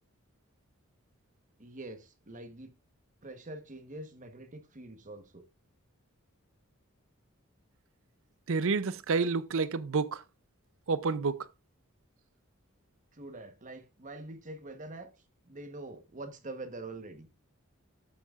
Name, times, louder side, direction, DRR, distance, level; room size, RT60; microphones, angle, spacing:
voice 1, 1.6-2.7 3.2-5.4 13.1-15.1 15.5-17.3, right 2 dB, 35° right, 1.2 m, -44 dB
voice 2, 8.5-10.2 10.9-11.5, right 4 dB, 65° right, 0.6 m, -29 dB
13.0 x 8.6 x 2.4 m
head